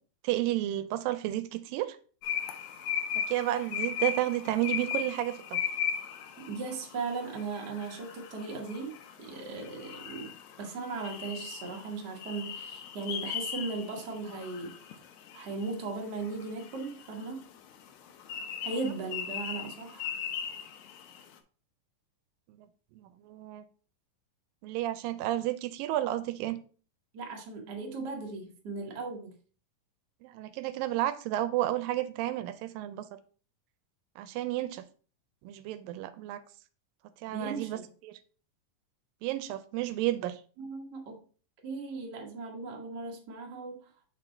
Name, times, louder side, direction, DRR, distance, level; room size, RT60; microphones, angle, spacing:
voice 1, 0.2-2.0 3.3-5.6 22.6-22.7 23.0-23.6 24.6-26.6 30.2-33.1 34.2-34.8 35.4-36.4 37.2-38.2 39.2-40.4, right 14 dB, 85° right, 12 dB, 2.3 m, -32 dB
sound 1, 2.2-21.2, left 8 dB, 75° left, 1.8 m, -38 dB
voice 2, 6.5-8.9 9.2-10.3 10.6-14.8 15.3-17.5 18.6-20.1 27.1-29.3 37.3-37.9 40.6-41.2 41.6-43.9, right 3 dB, 50° right, 0 dB, 1.2 m, -37 dB
6.6 x 3.8 x 4.3 m, 0.39 s
omnidirectional pair, 4.0 m